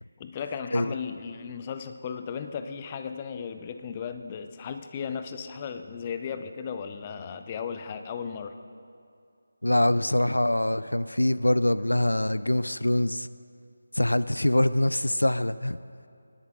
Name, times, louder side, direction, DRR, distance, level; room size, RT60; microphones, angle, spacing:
voice 1, 0.2-8.5, left 6 dB, 25° left, 9 dB, 0.5 m, -36 dB
voice 2, 9.6-13.3 13.9-15.8, left 1 dB, 90° left, 16 dB, 0.3 m, -24 dB
19.5 x 10.5 x 3.7 m, 2.4 s
figure-of-eight pair, 160°, 0 cm